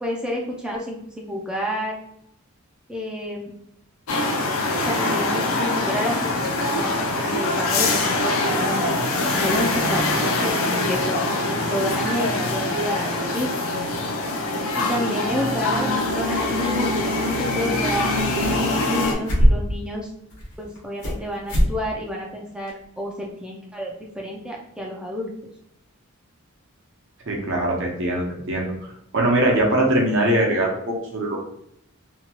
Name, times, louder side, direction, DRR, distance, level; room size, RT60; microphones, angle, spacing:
voice 1, 0.0-2.0 2.9-3.5 4.8-6.4 6.7-8.9 9.3-13.5 14.8-20.1 20.6-25.3, equal, 5° right, -2 dB, 0.3 m, -29 dB
sound 1, 4.1-19.1, left 2 dB, 65° left, 0.5 m, -23 dB
sound 2, 17.9-18.7 19.0-19.8 20.3-21.2 21.5-21.7 22.1-22.2 22.7-22.8, equal, 85° left, 1.1 m, -21 dB
voice 2, 27.3-28.7 29.1-31.4, right 1 dB, 60° right, -1 dB, 0.7 m, -21 dB
2.7 x 2.3 x 2.9 m, 0.75 s
head